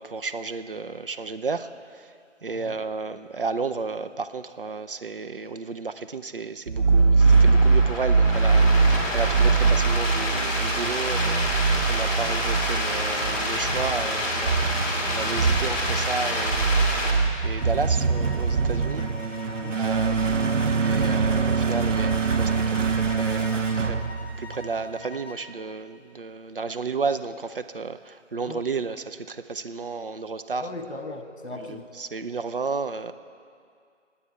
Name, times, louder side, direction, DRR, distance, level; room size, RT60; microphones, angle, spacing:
voice 1, 0.0-2.1 2.4-16.7 17.4-19.1 19.8-24.0 24.4-30.6 31.7-33.1, right 4 dB, 50° right, 10 dB, 0.5 m, -33 dB
sound 1, 6.7-24.8, right 4 dB, 80° right, 0.9 m, -23 dB
sound 2, 7.1-17.1, left 1 dB, 25° left, 2.1 m, -28 dB
sound 3, 16.3-25.5, left 3 dB, 10° left, 0.8 m, -44 dB
voice 2, 19.5-19.8 28.5-28.6 30.6-31.9, left 2 dB, 60° left, 5 dB, 1.4 m, -38 dB
19.0 x 8.7 x 4.6 m, 2.2 s
figure-of-eight pair, 155°, 37 cm